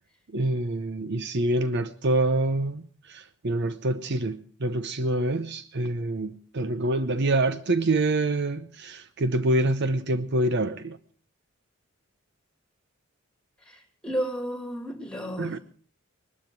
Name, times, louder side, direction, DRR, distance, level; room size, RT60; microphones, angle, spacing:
voice 1, 0.3-11.0 15.4-15.6, right 2 dB, 55° right, 0.8 m, -26 dB
voice 2, 13.7-15.6, equal, 5° left, 2.7 m, -32 dB
20.0 x 12.5 x 4.6 m
head